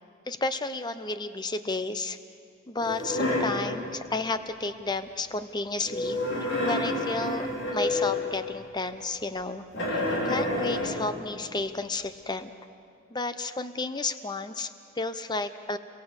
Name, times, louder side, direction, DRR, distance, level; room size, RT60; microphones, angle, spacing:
voice 1, 0.3-2.2 2.7-7.5 7.7-12.5 13.1-15.8, left 3 dB, 20° left, 11 dB, 0.8 m, -32 dB
sound 1, 2.8-3.6 5.8-8.4 9.7-11.1, left 1 dB, 60° left, 4.7 m, -28 dB
29.0 x 22.5 x 8.2 m, 2.4 s
head